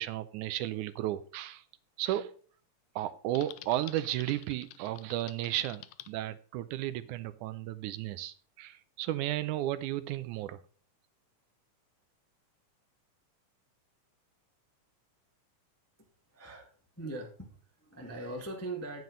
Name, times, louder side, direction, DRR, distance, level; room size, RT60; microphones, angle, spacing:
voice 1, 0.0-1.6 2.0-2.3 3.0-10.6, right 14 dB, 80° right, 2.0 m, -34 dB
Typing, 3.3-6.1, left 14 dB, 80° left, 1.7 m, -49 dB
voice 2, 16.3-16.7 17.0-19.0, right 2 dB, 10° left, 0.6 m, -41 dB
9.3 x 9.3 x 3.9 m
omnidirectional pair, 3.6 m